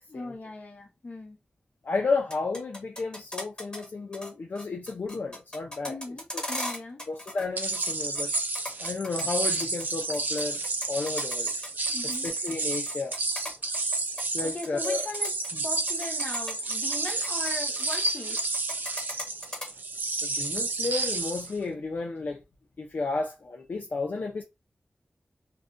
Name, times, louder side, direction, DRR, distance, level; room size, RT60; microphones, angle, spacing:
voice 1, 0.1-1.4 5.8-7.0 11.9-12.3 14.4-15.3 15.6-18.5, left 2 dB, 50° left, 0.9 m, -39 dB
voice 2, 1.8-6.0 7.1-8.3 8.8-10.6 10.9-11.5 12.2-13.1 14.3-15.1 15.5-15.6 20.2-22.4 22.8-24.4, left 3 dB, 65° left, 0.4 m, -32 dB
sound 1, 2.2-3.9 4.1-4.3 4.6-7.5 7.7-9.8 10.1-14.9 15.1-15.5 15.9-18.1 18.4-19.7, left 1 dB, 25° left, 1.3 m, -38 dB
sound 2, 7.6-21.5, right 3 dB, 60° right, 0.4 m, -30 dB
2.4 x 2.1 x 2.4 m
wide cardioid pair, 70°, 3 cm